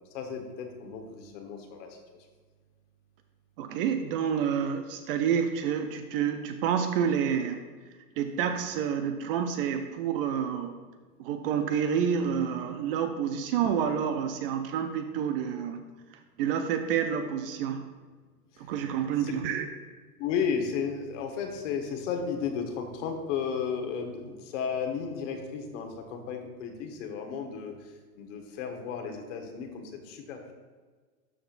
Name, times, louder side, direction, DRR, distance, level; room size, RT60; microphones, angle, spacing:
voice 1, 0.1-2.0 19.2-19.3 20.2-27.7 28.2-30.5, left 6 dB, 50° left, 4 dB, 1.3 m, -33 dB
voice 2, 3.6-7.6 8.2-10.8 11.2-15.8 16.4-17.9 18.7-19.7, right 8 dB, 40° right, 7 dB, 0.5 m, -28 dB
12.0 x 4.9 x 2.5 m, 1.4 s
hypercardioid pair, 130°, 46 cm